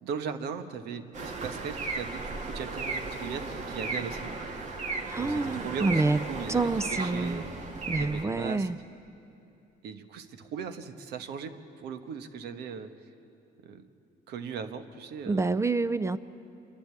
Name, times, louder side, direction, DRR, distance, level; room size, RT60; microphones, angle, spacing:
voice 1, 0.0-4.3 5.1-7.4 8.0-8.7 9.8-12.9 13.6-13.9 14.3-15.5, right 6 dB, 75° right, 9 dB, 1.2 m, -38 dB
sound 1, 1.1-8.2, right 3 dB, 45° right, 1.9 m, -35 dB
voice 2, 5.1-6.2 6.5-7.4 7.9-8.8 15.3-16.2, right 3 dB, 15° right, 14 dB, 0.5 m, -27 dB
28.0 x 11.5 x 8.8 m, 2.7 s
cardioid pair, 110°, 17 cm